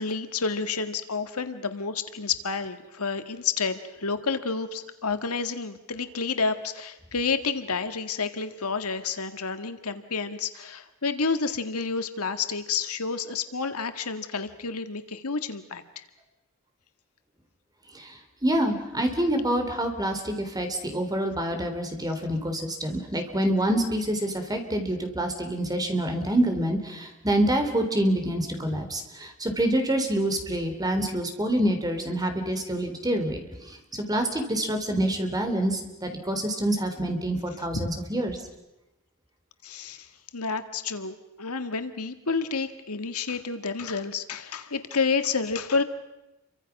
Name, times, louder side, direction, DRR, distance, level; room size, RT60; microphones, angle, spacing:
voice 1, 0.0-16.0 37.7-37.9 39.6-40.1 40.3-45.8, left 4 dB, 85° left, 9 dB, 1.8 m, -30 dB
voice 2, 18.4-38.4, right 1 dB, 20° right, 5 dB, 3.5 m, -27 dB
29.5 x 24.5 x 6.0 m, 0.96 s
head